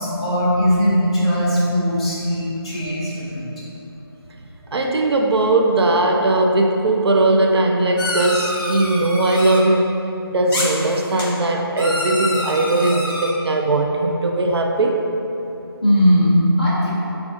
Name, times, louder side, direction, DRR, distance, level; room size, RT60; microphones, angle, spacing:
voice 1, 0.0-3.5 15.8-16.9, equal, 15° left, -10 dB, 0.5 m, -19 dB
voice 2, 4.7-10.0 10.3-15.1, right 2 dB, 80° right, 2 dB, 0.5 m, -19 dB
sound 1, 8.0-9.6 10.5-11.2 11.8-13.3, left 1 dB, 50° left, 1.0 m, -26 dB
7.0 x 2.4 x 2.5 m, 3.0 s
figure-of-eight pair, 175°, 13 cm